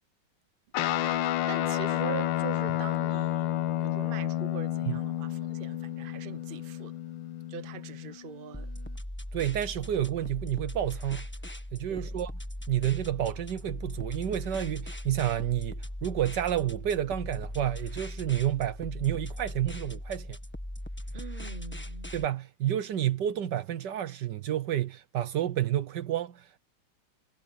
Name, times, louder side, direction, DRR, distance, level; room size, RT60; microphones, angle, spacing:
Guitar, 0.7-8.4, left 13 dB, 80° left, 1.4 m, -30 dB
voice 1, 0.8-7.0 7.5-8.7 11.9-12.1 21.1-22.1, right 7 dB, 35° right, 1.0 m, -42 dB
sound 1, 8.5-22.2, left 1 dB, 5° left, 1.3 m, -39 dB
voice 2, 9.3-11.3 11.7-12.3 12.7-20.4 22.1-26.6, right 11 dB, 65° right, 1.4 m, -30 dB
omnidirectional pair, 2.1 m